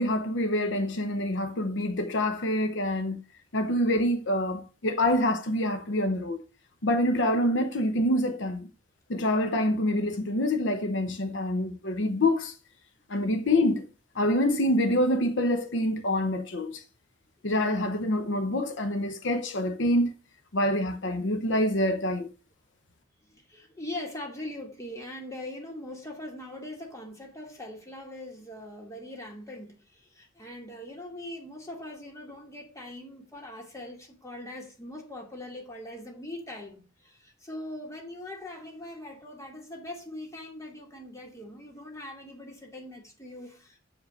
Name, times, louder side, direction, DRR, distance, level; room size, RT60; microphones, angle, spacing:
voice 1, 0.0-3.2 3.5-6.4 6.8-8.7 9.1-12.5 13.1-13.8 14.1-16.8 17.4-20.1 20.5-22.3, left 1 dB, 65° left, 0.8 m, -26 dB
voice 2, 23.3-43.8, left 1 dB, 15° left, 2.5 m, -41 dB
7.9 x 5.0 x 6.4 m
head